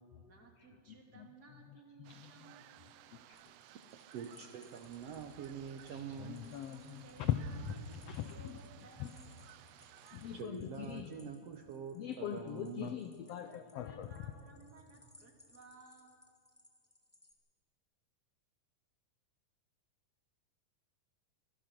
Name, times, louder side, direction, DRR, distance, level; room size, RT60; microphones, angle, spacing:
voice 1, 0.2-2.7 7.0-9.4 13.4-16.2, right 3 dB, 30° right, 1 dB, 2.6 m, -59 dB
voice 2, 2.0-2.3 3.3-3.4 5.9-7.7 8.1-8.6 9.0-9.1 10.1-11.3 11.9-14.1, left 10 dB, 85° left, 10 dB, 1.4 m, -40 dB
sound 1, 2.0-10.4, right 13 dB, 85° right, 1.4 m, -59 dB
sound 2, 3.3-17.3, left 1 dB, 15° left, 0.6 m, -65 dB
voice 3, 4.1-6.5 10.3-12.9, right 7 dB, 70° right, 5 dB, 1.6 m, -45 dB
sound 3, 4.8-8.2, left 1 dB, 65° left, 8.0 m, -65 dB
25.5 x 18.0 x 6.0 m, 2.3 s
omnidirectional pair, 3.7 m